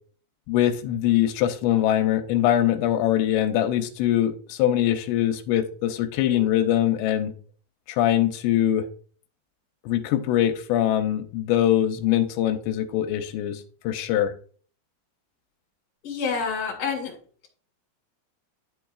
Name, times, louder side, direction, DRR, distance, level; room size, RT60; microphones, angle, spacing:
voice 1, 0.5-7.3 7.9-8.9 9.8-14.3, left 11 dB, 90° left, 7 dB, 2.8 m, -23 dB
voice 2, 16.0-17.2, left 5 dB, 45° left, 0 dB, 2.5 m, -28 dB
11.0 x 4.7 x 2.3 m, 0.44 s
omnidirectional pair, 5.0 m